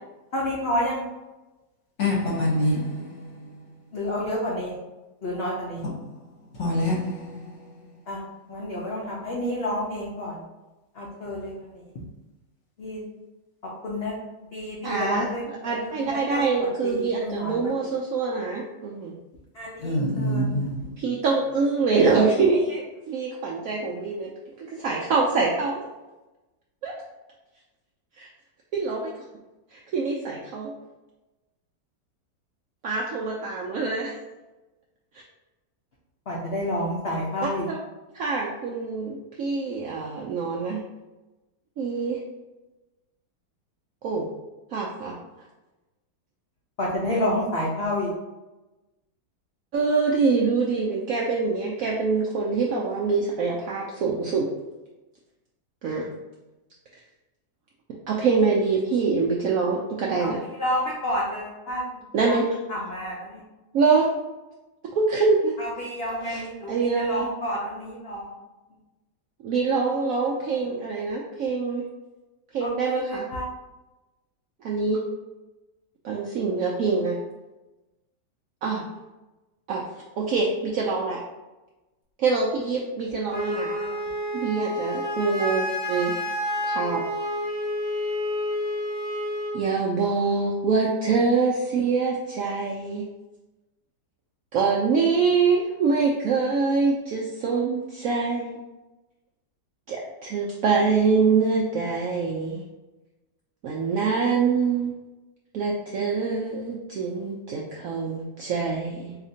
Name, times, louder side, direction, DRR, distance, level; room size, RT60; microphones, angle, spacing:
voice 1, 0.3-1.0 3.9-4.8 5.2-5.9 8.1-8.2 8.5-10.4 10.9-12.0 12.8-13.0 13.8-14.2 14.5-17.7 19.5-20.5 20.8-20.9 36.3-37.7 46.8-48.1 60.2-60.3 60.6-62.0 62.3-62.4 62.7-63.4 65.6-68.3 72.6-73.5 83.3-84.0, left 1 dB, 75° left, -4 dB, 0.5 m, -30 dB
voice 2, 2.0-3.4 6.6-7.6 19.8-20.9, left 1 dB, 50° left, -4 dB, 1.1 m, -26 dB
voice 3, 14.8-15.3 15.6-19.1 21.0-24.3 24.6-25.8 26.8-26.9 28.2-28.3 28.7-29.1 29.7-30.7 32.8-34.1 37.4-37.8 38.1-40.8 41.8-42.2 44.0-44.3 44.7-45.2 49.7-54.5 55.8-56.1 58.1-60.4 62.1-62.4 63.7-64.1 64.9-65.5 66.2-66.4 66.7-67.3 69.4-71.8 72.5-73.3 74.6-75.0 76.0-77.2 78.6-78.9 79.7-79.8 80.2-81.2 82.2-83.7 84.3-86.1 86.7-87.0 89.5-93.0 94.5-98.5 99.9-102.6 103.6-104.9 105.5-109.2, right 4 dB, 75° right, -2 dB, 0.7 m, -24 dB
Wind instrument woodwind instrument, 83.3-89.6, left 1 dB, 10° left, 0.4 m, -29 dB
4.1 x 2.8 x 2.7 m, 1.1 s
omnidirectional pair, 1.9 m